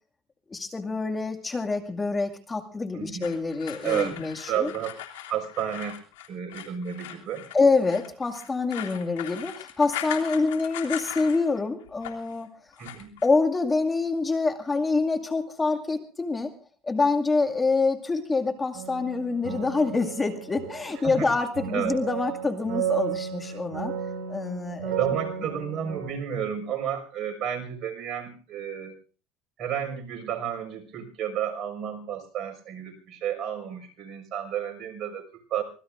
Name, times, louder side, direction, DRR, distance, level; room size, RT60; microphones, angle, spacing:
voice 1, 0.5-4.7 7.5-12.5 13.2-16.5 16.8-23.9 24.3-24.9, left 3 dB, 20° left, 6 dB, 2.1 m, -26 dB
voice 2, 2.9-3.3 3.8-4.2 4.5-5.0 5.3-6.0 6.3-7.5 12.8-13.1 21.0-21.3 21.7-22.0 24.8-29.0 29.6-35.6, right 9 dB, 50° right, 5 dB, 5.8 m, -31 dB
sound 1, 3.2-11.6 11.9-12.4 12.7-13.3, left 11 dB, 90° left, 2.9 m, -39 dB
sound 2, 18.7-26.1, right 8 dB, 70° right, 5.1 m, -33 dB
25.5 x 19.5 x 2.6 m, 0.39 s
supercardioid pair, 100°, 0 cm